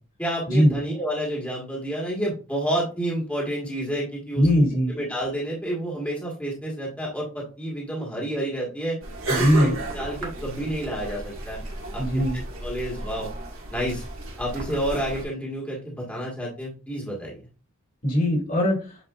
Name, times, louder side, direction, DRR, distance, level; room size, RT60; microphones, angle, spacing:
voice 1, 0.2-4.5 4.9-9.0 9.3-11.6 11.9-13.3 13.7-14.0 14.4-17.4, right 1 dB, 5° left, -4 dB, 1.7 m, -30 dB
voice 2, 4.4-5.0 9.3-9.7 12.0-12.4 18.0-18.8, equal, 40° left, 0 dB, 2.2 m, -20 dB
sound 1, 9.0-15.3, right 2 dB, 70° right, 1.9 m, -33 dB
8.3 x 4.9 x 2.5 m, 0.35 s
head